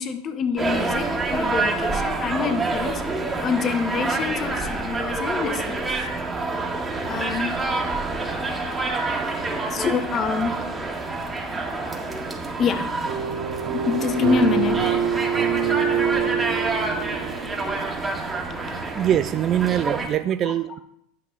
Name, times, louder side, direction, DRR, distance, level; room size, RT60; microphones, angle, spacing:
voice 1, 0.0-3.0 3.4-6.1 7.0-7.6 9.7-10.6 12.6-12.9 13.7-15.0 19.7-19.8 20.4-20.5, left 5 dB, 35° left, 1.1 m, -26 dB
sound 1, 0.6-20.1, right 3 dB, 15° right, 1.8 m, -27 dB
sound 2, 13.0-18.2, right 7 dB, 55° right, 1.0 m, -25 dB
voice 2, 18.9-20.8, right 11 dB, 40° right, 0.4 m, -23 dB
11.0 x 5.4 x 4.1 m
hypercardioid pair, 95°, 0 cm